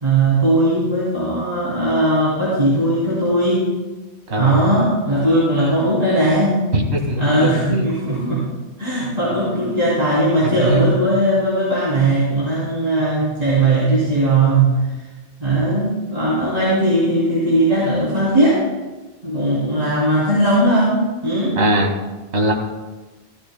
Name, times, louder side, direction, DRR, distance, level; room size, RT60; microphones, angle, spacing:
voice 1, 0.0-3.7 4.4-6.6 7.2-8.5 8.8-14.8 15.4-18.6 19.2-21.6, right 1 dB, 35° right, -10 dB, 3.2 m, -18 dB
voice 2, 4.3-4.7 6.7-7.9 10.6-10.9 12.0-12.1 13.6-13.7 21.6-21.9 22.3-22.5, right 2 dB, 75° right, 1 dB, 1.9 m, -20 dB
15.5 x 13.0 x 2.2 m, 1.2 s
omnidirectional pair, 1.1 m